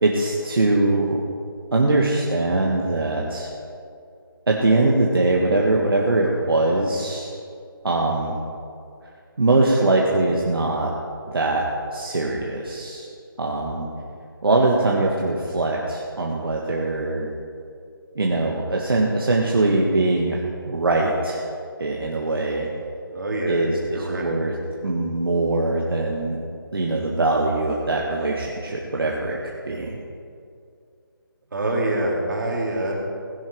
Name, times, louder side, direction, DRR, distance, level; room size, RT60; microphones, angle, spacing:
voice 1, 0.0-1.2 1.7-3.5 4.5-7.3 7.8-8.3 9.4-10.9 11.3-11.6 11.9-13.1 13.4-13.9 14.4-17.3 18.2-20.4 20.7-21.5 21.8-22.7 23.5-24.5 24.8-26.4 26.7-29.4 29.7-30.0, right 2 dB, 75° right, -2 dB, 1.8 m, -22 dB
voice 2, 23.1-24.3 31.5-32.9, right 1 dB, 55° right, -2 dB, 3.3 m, -25 dB
17.0 x 10.5 x 4.7 m, 2.4 s
hypercardioid pair, 175°, 12 cm